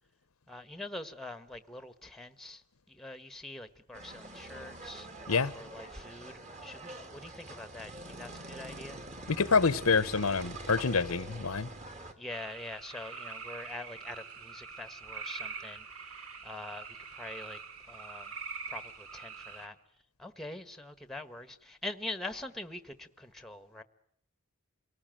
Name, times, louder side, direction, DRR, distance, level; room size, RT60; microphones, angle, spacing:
voice 1, 0.5-5.1 5.5-6.3 6.6-9.0 12.2-15.9 16.4-16.9 17.1-17.6 17.9-18.3 18.7-19.8 20.2-23.8, left 2 dB, ahead, 1.2 m, -44 dB
sound 1, 3.9-12.1, right 2 dB, 30° right, 2.6 m, -45 dB
voice 2, 9.3-11.7, left 4 dB, 85° left, 1.0 m, -27 dB
sound 2, 12.3-19.7, right 5 dB, 80° right, 2.5 m, -44 dB
28.0 x 19.0 x 9.0 m
head